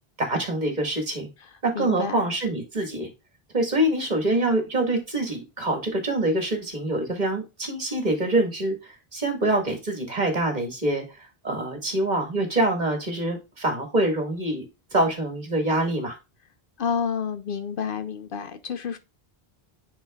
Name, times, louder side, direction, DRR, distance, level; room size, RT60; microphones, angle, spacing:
voice 1, 0.2-1.3 1.6-3.1 3.5-14.6 14.9-16.2, right 1 dB, 45° right, 1.9 m, -25 dB
voice 2, 1.4-2.3 16.8-19.0, left 6 dB, 65° left, 0.8 m, -30 dB
9.7 x 4.5 x 2.3 m
omnidirectional pair, 1.0 m